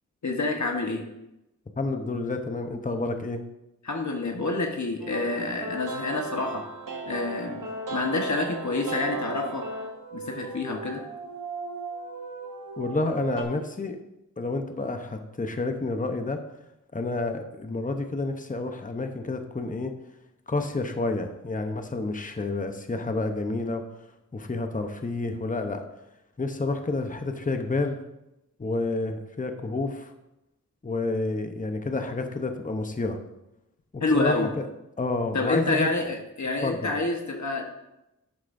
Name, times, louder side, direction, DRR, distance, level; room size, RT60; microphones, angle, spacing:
voice 1, 0.2-1.0 3.8-6.7 7.0-9.6 10.1-11.0 34.0-34.5 35.3-37.6, left 3 dB, 60° left, 2 dB, 1.3 m, -28 dB
voice 2, 1.8-3.4 12.8-14.0 14.4-16.4 16.9-19.9 20.5-23.8 24.3-25.8 26.4-28.0 28.6-30.1 30.8-33.2 33.9-34.7 35.0-35.9 36.6-36.9, left 3 dB, 25° left, 5 dB, 0.9 m, -29 dB
sound 1, 5.0-13.4, right 3 dB, 85° right, 1.5 m, -36 dB
11.5 x 8.1 x 2.7 m, 0.90 s
wide cardioid pair, 90°, 32 cm